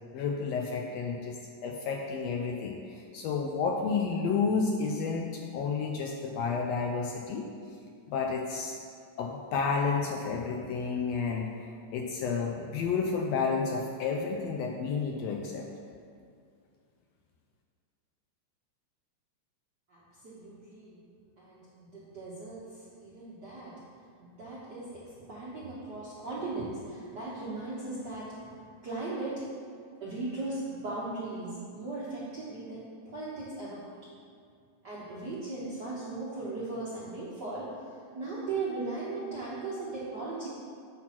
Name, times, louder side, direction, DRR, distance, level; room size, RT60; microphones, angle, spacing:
voice 1, 0.1-7.5 8.1-8.8 9.2-15.7, left 5 dB, 80° left, 1 dB, 1.6 m, -31 dB
voice 2, 20.2-21.0 21.4-21.6 21.9-23.7 24.2-28.5 28.8-29.4 30.0-33.8 34.8-37.7 38.1-40.5, right 3 dB, 60° right, -8 dB, 1.1 m, -38 dB
8.4 x 5.9 x 4.2 m, 2.2 s
omnidirectional pair, 3.3 m